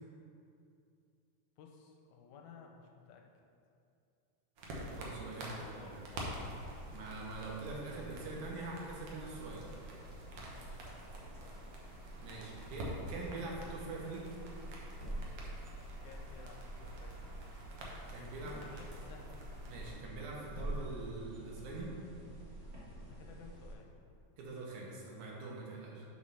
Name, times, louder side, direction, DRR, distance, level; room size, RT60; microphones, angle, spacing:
voice 1, 1.6-3.2 5.4-7.0 10.4-11.7 15.8-17.4 18.4-19.4 23.0-23.9, left 5 dB, 80° left, 2 dB, 2.1 m, -56 dB
sound 1, 4.6-19.9, right 1 dB, 60° right, 1.8 m, -48 dB
voice 2, 4.8-6.0 6.9-9.7 12.2-14.4 18.1-18.5 19.7-21.9 24.4-26.0, right 3 dB, 80° right, -3 dB, 2.7 m, -44 dB
sound 2, 6.2-23.7, right 1 dB, 30° right, 1.1 m, -48 dB
6.3 x 6.0 x 5.5 m, 2.5 s
omnidirectional pair, 3.4 m